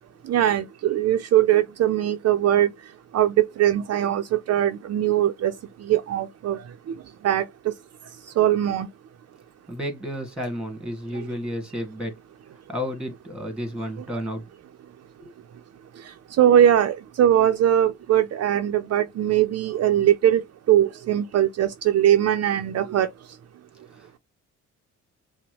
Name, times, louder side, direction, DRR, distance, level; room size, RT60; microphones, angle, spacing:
voice 1, 0.3-2.7 3.1-3.3 3.6-4.2 4.5-5.5 5.9-6.6 7.2-7.4 8.4-8.9 16.4-20.4 20.7-23.1, right 11 dB, 55° right, 0.6 m, -20 dB
voice 2, 9.7-12.1 12.7-14.4 15.2-15.3 23.9-24.2, equal, 5° right, 2.0 m, -32 dB
5.9 x 2.2 x 3.1 m
cardioid pair, 90°, 30 cm